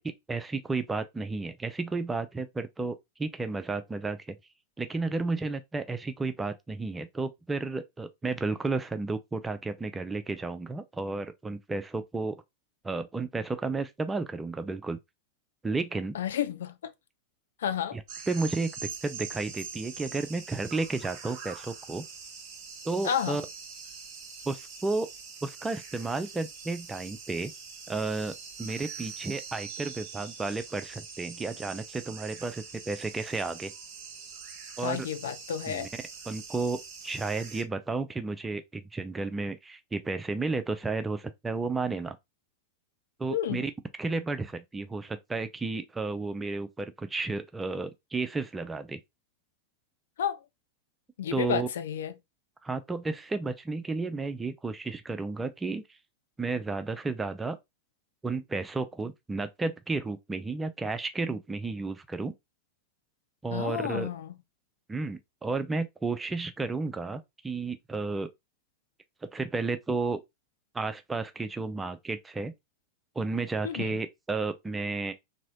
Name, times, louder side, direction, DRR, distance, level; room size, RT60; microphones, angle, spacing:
voice 1, 0.3-4.4 4.8-12.4 12.8-15.0 15.6-16.2 17.9-22.1 22.8-23.4 24.5-25.1 25.4-27.5 27.9-33.7 34.8-35.1 35.7-35.9 36.3-36.8 37.0-42.2 43.2-43.7 44.0-49.0 51.3-51.7 52.6-55.8 56.4-57.6 58.2-62.3 63.4-64.1 64.9-68.3 69.3-70.2 70.7-72.5 73.2-75.1, right 3 dB, 10° right, 0.4 m, -32 dB
voice 2, 16.1-16.9 17.6-18.0 23.0-23.4 34.8-35.9 43.3-43.6 50.2-50.4 51.2-52.1 63.5-64.4 73.6-73.9, left 9 dB, 60° left, 0.4 m, -31 dB
sound 1, 18.1-37.6, right 6 dB, 45° right, 0.7 m, -44 dB
2.9 x 2.7 x 2.8 m
figure-of-eight pair, 90°, 0 cm